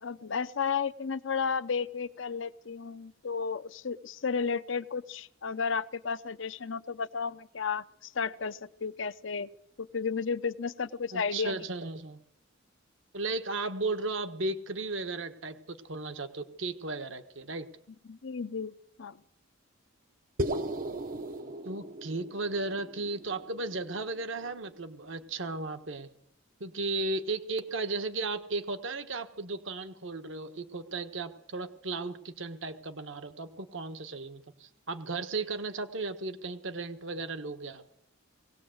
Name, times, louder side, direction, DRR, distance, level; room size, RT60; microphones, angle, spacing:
voice 1, 0.0-9.5 9.8-11.6 18.1-18.7 19.0-19.2, left 5 dB, 65° left, 13 dB, 0.7 m, -33 dB
voice 2, 11.1-12.2 13.1-17.7 21.6-26.1 26.6-37.8, right 3 dB, 65° right, 8 dB, 1.4 m, -35 dB
sound 1, 20.4-24.8, right 1 dB, 45° right, 0.8 m, -37 dB
20.5 x 17.5 x 7.9 m, 0.72 s
head